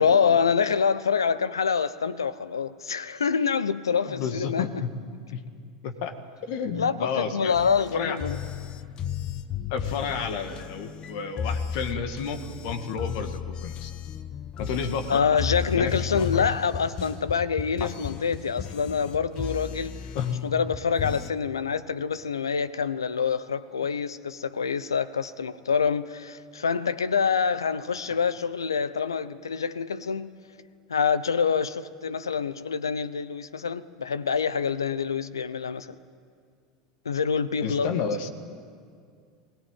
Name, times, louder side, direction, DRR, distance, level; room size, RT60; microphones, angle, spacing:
voice 1, 0.0-4.6 6.8-8.4 15.1-20.0 20.4-30.3 30.9-36.0 37.0-37.9, left 6 dB, 85° left, 0.8 m, -26 dB
voice 2, 4.0-4.9 5.3-5.4 5.8-6.1 6.5-7.5 7.9-8.2 9.7-13.9 14.6-15.4 15.7-16.4 17.8-17.9 20.1-20.3 37.6-38.3, left 6 dB, 60° left, 1.9 m, -31 dB
sound 1, 7.5-21.3, left 7 dB, 40° left, 1.0 m, -34 dB
22.0 x 18.5 x 9.1 m
hypercardioid pair, 80°, 2 cm